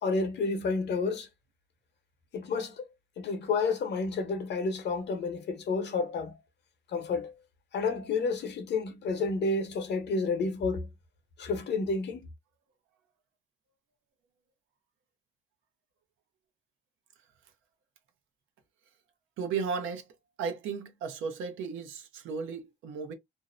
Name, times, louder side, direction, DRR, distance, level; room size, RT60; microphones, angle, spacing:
voice 1, 0.0-1.3 2.3-2.8 3.2-6.3 6.9-7.3 7.7-10.9 11.4-12.3, left 4 dB, 60° left, 0.8 m, -30 dB
voice 2, 19.4-20.1 20.4-23.1, right 5 dB, 85° right, 0.7 m, -35 dB
2.6 x 2.1 x 2.5 m
cardioid pair, 90°, 20 cm